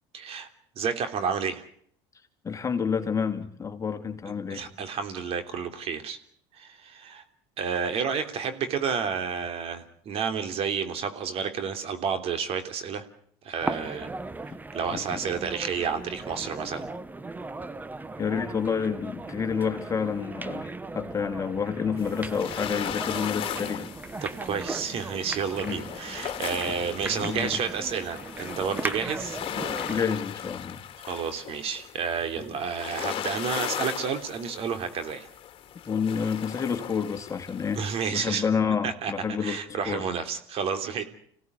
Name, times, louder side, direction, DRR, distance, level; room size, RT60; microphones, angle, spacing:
voice 1, 0.1-0.5 0.8-1.6 4.5-6.2 6.5-7.2 7.6-13.0 13.4-14.1 14.7-16.9 24.2-29.4 31.1-35.3 37.7-38.4 38.8-39.1 39.4-41.0, right 6 dB, 50° right, 8 dB, 3.3 m, -30 dB
voice 2, 2.4-4.7 13.8-14.0 14.9-15.2 18.2-23.9 25.6-25.8 27.1-27.5 29.9-30.8 32.4-32.5 35.9-40.1, left 6 dB, 25° left, 6 dB, 2.7 m, -29 dB
sound 1, 13.6-30.1, right 3 dB, 15° right, 1.0 m, -38 dB
sound 2, 22.0-38.1, left 10 dB, 45° left, 2.4 m, -37 dB
26.0 x 17.0 x 9.7 m, 0.64 s
supercardioid pair, 100°, 13 cm